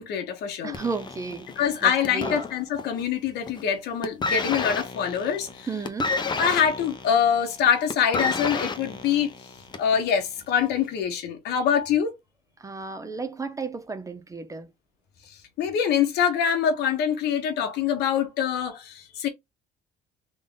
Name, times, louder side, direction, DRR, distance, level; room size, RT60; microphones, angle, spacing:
voice 1, 0.0-0.8 1.6-5.7 6.1-9.3 9.8-12.1 15.6-19.3, left 8 dB, 80° left, 1.2 m, -24 dB
voice 2, 0.6-2.4 5.7-6.1 12.6-14.7, right 4 dB, 20° right, 0.6 m, -33 dB
sound 1, 0.7-3.1 3.4-3.7 4.0-10.0 10.8-10.9, left 3 dB, 25° left, 0.7 m, -31 dB
3.8 x 2.5 x 3.8 m
cardioid pair, 110°, 17 cm